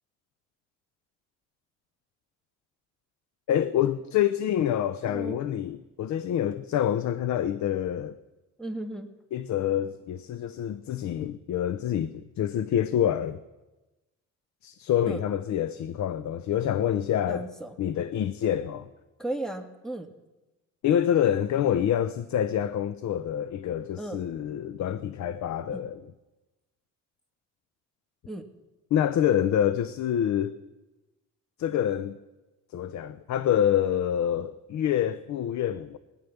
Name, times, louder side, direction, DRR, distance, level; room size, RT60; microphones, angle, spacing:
voice 1, 3.5-8.2 9.3-13.4 14.6-17.5 17.8-18.9 20.8-26.1 28.9-30.5 31.6-32.2 32.7-36.0, left 10 dB, 70° left, 0.7 m, -27 dB
voice 2, 5.1-5.4 8.6-9.1 15.1-15.2 17.3-17.8 19.2-20.1 24.0-24.2 25.7-25.8 28.3-28.5, right 2 dB, ahead, 1.9 m, -35 dB
17.0 x 10.5 x 7.1 m
cardioid pair, 90°, 30 cm